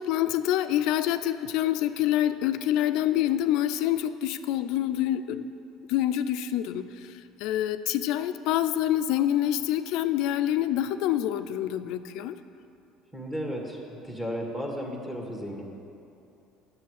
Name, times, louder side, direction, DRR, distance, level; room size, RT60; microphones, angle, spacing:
voice 1, 0.0-5.5 5.9-6.9 7.4-12.4, left 12 dB, 70° left, 11 dB, 0.4 m, -26 dB
voice 2, 13.1-15.6, equal, 15° right, -1 dB, 1.8 m, -34 dB
9.2 x 7.0 x 6.5 m, 2.8 s
supercardioid pair, 100°, 0 cm